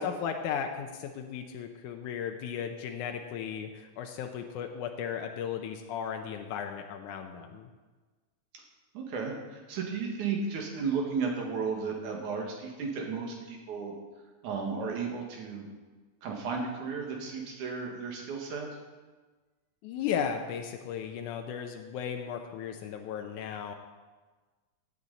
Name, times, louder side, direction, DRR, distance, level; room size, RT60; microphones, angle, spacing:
voice 1, 0.0-7.7 19.8-23.7, left 8 dB, 85° left, 5 dB, 2.2 m, -35 dB
voice 2, 8.9-13.9 14.4-15.7 16.2-18.7, right 5 dB, 80° right, 1 dB, 3.2 m, -34 dB
16.0 x 8.7 x 4.1 m, 1.3 s
omnidirectional pair, 3.4 m